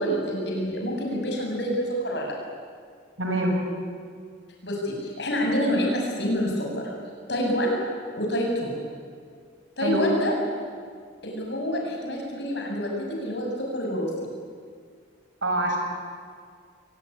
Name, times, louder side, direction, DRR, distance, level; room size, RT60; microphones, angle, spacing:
voice 1, 0.0-2.3 4.6-6.9 7.3-7.8 8.1-8.8 9.8-10.3 11.2-14.3, equal, 60° left, 0 dB, 7.1 m, -27 dB
voice 2, 3.2-3.6 9.8-10.0 15.4-15.8, right 1 dB, 80° right, 2 dB, 6.0 m, -24 dB
23.5 x 20.0 x 9.9 m, 2.1 s
head